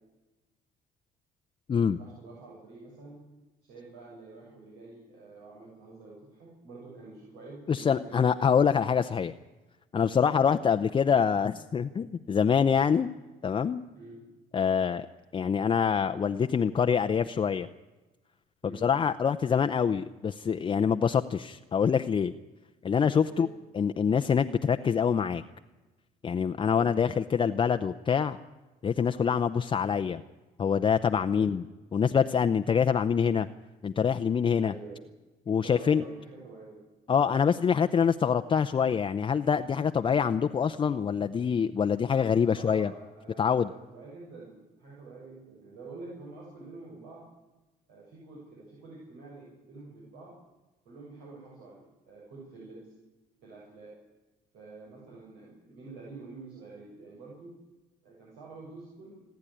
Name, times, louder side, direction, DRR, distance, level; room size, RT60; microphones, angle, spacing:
voice 1, 1.7-3.3 3.6-8.2 10.3-10.4 13.9-14.4 18.6-18.9 23.2-23.5 26.7-26.9 31.3-31.6 34.6-35.1 35.6-36.8 42.5-47.3 47.9-50.4 50.9-52.9 53.4-54.0 54.5-57.5 58.0-59.2, right 3 dB, 85° right, -4 dB, 6.9 m, -47 dB
voice 2, 7.7-9.3 9.9-13.1 13.4-13.8 14.5-15.1 15.3-17.7 18.8-22.3 22.8-23.5 23.8-25.4 26.2-28.4 28.8-30.2 30.6-31.6 31.9-33.5 33.8-34.7 35.5-36.0 37.1-42.9 43.4-43.7, left 7 dB, 30° left, 7 dB, 0.6 m, -25 dB
28.0 x 10.5 x 10.0 m, 1.1 s
cardioid pair, 110°, 17 cm